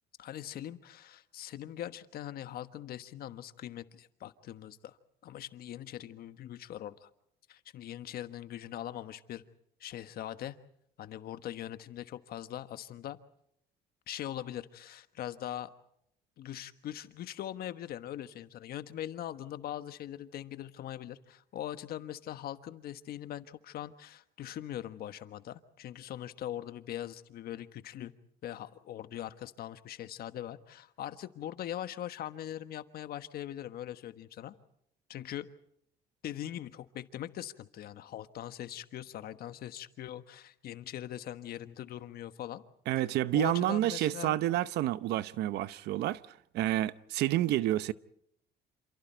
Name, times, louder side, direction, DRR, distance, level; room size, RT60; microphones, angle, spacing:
voice 1, 0.2-5.0 5.2-7.1 7.5-9.4 9.8-10.6 11.0-13.2 14.1-15.7 16.4-28.1 28.4-34.5 35.1-35.5 36.2-42.6 43.3-44.4, left 12 dB, 65° left, 1.3 m, -41 dB
voice 2, 42.9-46.2 46.5-47.9, right 14 dB, 80° right, 0.8 m, -29 dB
28.0 x 28.0 x 4.5 m
cardioid pair, 110°, 17 cm